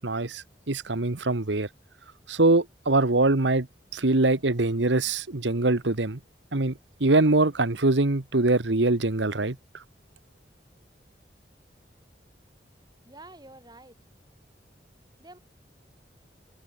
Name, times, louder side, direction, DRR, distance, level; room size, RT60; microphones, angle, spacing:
voice 1, 0.0-1.7 2.3-3.7 3.9-6.2 6.5-9.6, right 2 dB, 90° right, 1.4 m, -23 dB
voice 2, 13.0-14.0 15.2-15.4, right 2 dB, 20° right, 6.9 m, -48 dB
head